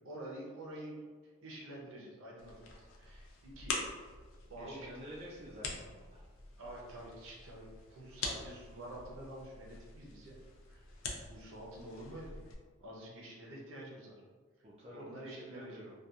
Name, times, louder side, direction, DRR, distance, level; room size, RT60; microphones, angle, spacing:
voice 1, 0.0-1.0 1.2-3.8 4.5-4.8 6.6-10.3 10.7-10.9 11.2-12.3 12.8-14.2 14.9-15.8, right 1 dB, 70° right, -3 dB, 0.6 m, -48 dB
sound 1, 2.4-12.5, left 3 dB, 70° left, 0.4 m, -45 dB
voice 2, 4.6-6.3 14.6-15.9, equal, 30° right, -5 dB, 0.3 m, -50 dB
2.7 x 2.3 x 2.3 m, 1.5 s
head